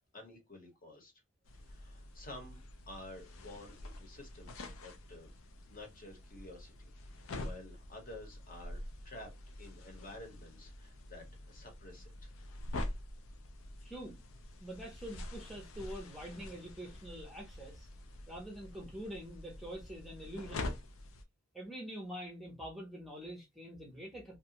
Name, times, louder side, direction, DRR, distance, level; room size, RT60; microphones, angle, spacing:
voice 1, 0.1-1.1 1.6-5.3 5.7-9.3 9.6-12.3, left 1 dB, 40° left, 1.0 m, -51 dB
sound 1, 1.4-21.2, left 1 dB, 85° left, 0.5 m, -46 dB
voice 2, 13.8-14.2 14.6-17.9 18.3-20.8 21.5-24.4, equal, ahead, 0.6 m, -45 dB
2.5 x 2.2 x 2.8 m
head